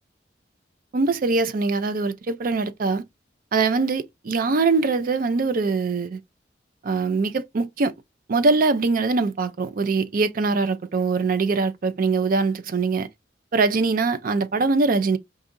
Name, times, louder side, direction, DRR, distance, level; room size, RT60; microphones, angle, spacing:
voice 1, 0.9-3.0 3.5-6.2 6.8-7.9 8.3-13.1 13.5-15.2, right 4 dB, 50° right, 0.4 m, -22 dB
4.8 x 2.6 x 2.5 m
head